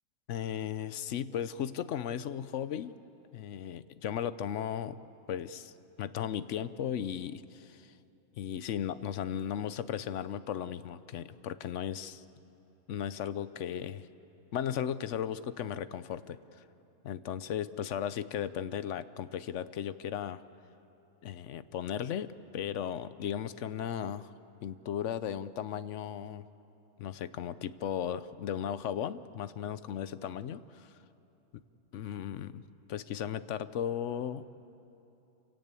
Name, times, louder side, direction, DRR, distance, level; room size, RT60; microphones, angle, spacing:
voice 1, 0.3-2.9 3.3-5.0 5.3-5.7 6.0-7.9 8.4-12.2 12.9-14.1 14.5-16.4 17.0-20.4 21.2-24.3 24.6-26.4 27.0-30.9 31.9-32.6 32.9-34.5, left 9 dB, 75° left, 14 dB, 1.0 m, -36 dB
28.0 x 17.5 x 8.3 m, 2.9 s
omnidirectional pair, 1.3 m